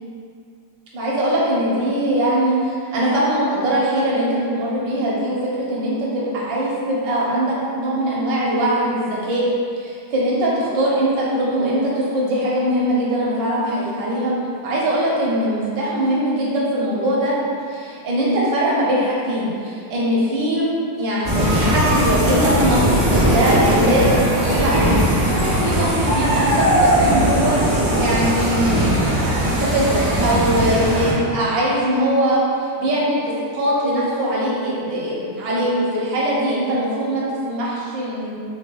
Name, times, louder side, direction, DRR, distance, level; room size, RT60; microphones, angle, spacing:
voice 1, 0.9-9.4 9.8-14.3 14.6-17.3 17.7-25.0 25.4-28.7 29.4-38.3, right 1 dB, 70° right, -6 dB, 1.6 m, -21 dB
sound 1, 21.2-31.1, equal, 45° right, 0.5 m, -19 dB
5.9 x 3.1 x 2.3 m, 2.3 s
omnidirectional pair, 2.1 m